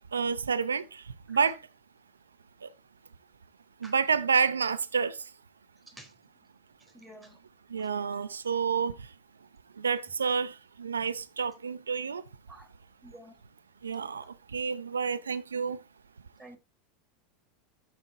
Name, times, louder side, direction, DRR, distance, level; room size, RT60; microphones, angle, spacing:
voice 1, 0.1-0.8 1.3-1.6 3.8-5.1 7.7-8.9 9.8-10.5 10.8-12.2 13.8-14.2 14.5-15.8, right 6 dB, 85° right, 0.6 m, -28 dB
voice 2, 6.9-7.4 7.8-7.9 12.5-12.7 13.0-13.3 14.0-14.1 16.4-16.6, right 1 dB, 15° right, 4.0 m, -50 dB
14.0 x 6.1 x 2.7 m
hypercardioid pair, 85°, 0 cm